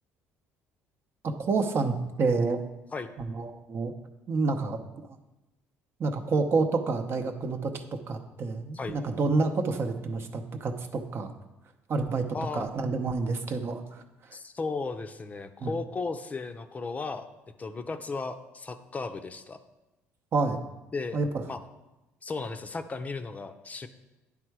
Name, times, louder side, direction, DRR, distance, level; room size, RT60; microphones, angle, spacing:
voice 1, 1.2-2.6 3.2-3.9 4.3-4.8 5.1-5.2 6.0-11.3 11.9-12.3 12.5-14.0 15.6-15.7 20.3-20.6 21.1-21.4, right 3 dB, 50° right, 6 dB, 0.7 m, -28 dB
voice 2, 12.3-12.7 14.3-17.3 17.6-19.6 20.9-21.2 21.5-21.6 22.2-23.9, left 4 dB, 30° left, 8 dB, 0.6 m, -35 dB
9.9 x 3.6 x 4.6 m, 0.99 s
supercardioid pair, 80°, 5 cm